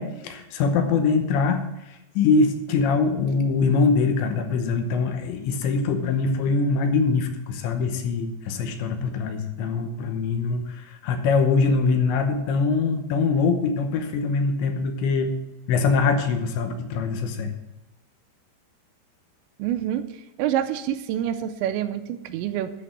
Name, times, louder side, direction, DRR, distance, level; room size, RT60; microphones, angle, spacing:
voice 1, 0.0-1.6 2.2-15.3 15.7-17.5, left 4 dB, 80° left, 6 dB, 3.2 m, -23 dB
voice 2, 19.6-22.7, right 10 dB, 85° right, 9 dB, 2.8 m, -27 dB
12.5 x 4.2 x 8.2 m, 0.96 s
omnidirectional pair, 5.3 m